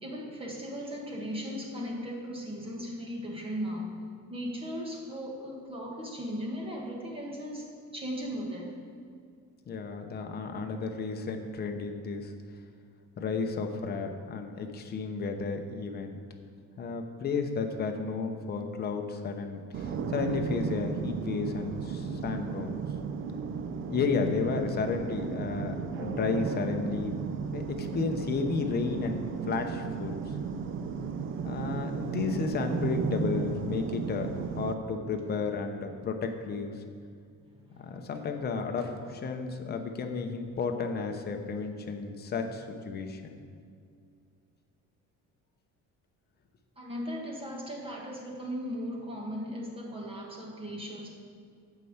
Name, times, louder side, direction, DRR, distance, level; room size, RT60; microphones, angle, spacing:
voice 1, 0.0-4.0 4.3-8.8 37.6-38.1 46.8-51.1, equal, 20° right, -2 dB, 1.5 m, -37 dB
voice 2, 9.7-12.3 13.2-16.2 16.8-22.8 23.9-27.2 27.5-30.2 31.4-36.8 37.8-43.4, left 4 dB, 30° left, 5 dB, 0.8 m, -32 dB
sound 1, 19.7-34.7, right 6 dB, 40° right, 0.5 m, -34 dB
9.0 x 5.7 x 8.0 m, 2.2 s
cardioid pair, 180°, 30 cm